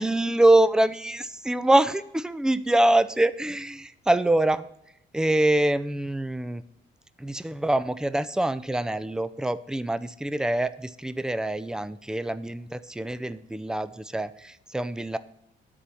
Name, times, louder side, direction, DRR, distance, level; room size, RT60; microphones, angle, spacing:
voice 1, 0.0-4.7 5.1-6.6 7.2-15.2, right 1 dB, 5° right, 13 dB, 0.5 m, -24 dB
10.0 x 4.3 x 7.6 m, 0.77 s
cardioid pair, 90°, 20 cm